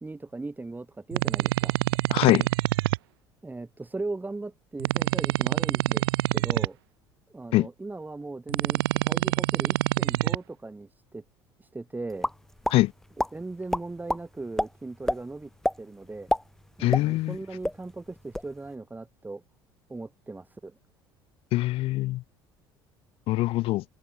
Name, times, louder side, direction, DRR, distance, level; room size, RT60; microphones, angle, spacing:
voice 1, 0.0-1.7 3.4-6.0 6.3-6.8 7.3-11.2 11.6-12.3 13.3-15.5 15.8-16.3 16.8-19.4 19.9-20.8, right 3 dB, 15° right, 1.9 m, -38 dB
sound 1, 1.1-3.0 4.8-6.7 8.5-10.4, right 18 dB, 70° right, 0.5 m, -25 dB
voice 2, 2.1-2.5 7.5-7.7 12.7-12.9 16.8-17.4 21.5-22.2 23.3-23.8, left 17 dB, 50° left, 0.4 m, -23 dB
sound 2, 12.2-12.8 13.2-13.3 13.7-14.2 14.6-14.7 15.1-15.2 15.6-15.8 16.1-17.4 17.6-17.8 18.2-18.5, left 1 dB, 5° left, 0.5 m, -26 dB
open air
figure-of-eight pair, 65°, 13 cm